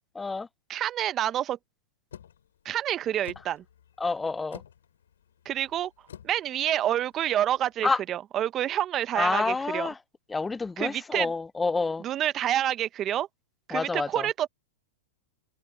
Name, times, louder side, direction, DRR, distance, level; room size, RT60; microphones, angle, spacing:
voice 1, 0.2-0.5 4.0-4.6 7.8-8.0 9.2-10.0 10.3-12.0 13.7-14.3, left 3 dB, 10° left, 0.4 m, -28 dB
voice 2, 0.7-1.6 2.6-3.6 5.4-5.9 6.2-9.9 10.8-11.3 12.0-13.3 13.7-14.5, right 11 dB, 30° right, 0.9 m, -28 dB
sound 1, 2.1-7.7, left 9 dB, 80° left, 6.4 m, -50 dB
open air
hypercardioid pair, 120°, 0 cm